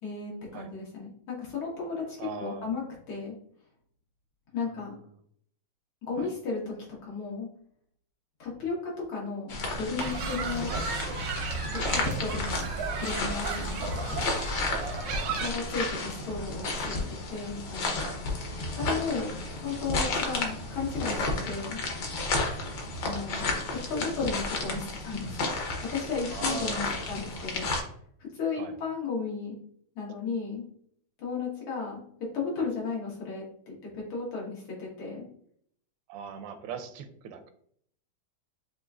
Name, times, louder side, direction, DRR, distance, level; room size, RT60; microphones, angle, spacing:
voice 1, 0.0-2.8 3.1-3.3 4.5-5.0 6.1-6.7 7.0-7.5 8.4-8.8 9.1-10.7 11.7-12.7 13.0-14.2 15.4-17.0 17.3-17.9 18.8-19.3 19.6-21.8 23.0-25.5 25.9-27.7 28.2-29.5 30.0-30.7 31.2-32.0 32.3-35.3, left 4 dB, 85° left, -4 dB, 2.3 m, -34 dB
voice 2, 2.2-2.7 4.6-4.7 6.2-6.3 10.7-10.9 14.7-14.9 18.0-18.2 23.1-23.2 26.3-27.3 28.6-28.7 36.1-37.5, right 7 dB, 85° right, 8 dB, 1.5 m, -40 dB
sound 1, 9.5-27.8, left 3 dB, 60° left, 1.4 m, -32 dB
sound 2, 10.0-15.5, right 4 dB, 70° right, 0.9 m, -34 dB
6.6 x 2.6 x 2.4 m, 0.64 s
omnidirectional pair, 2.3 m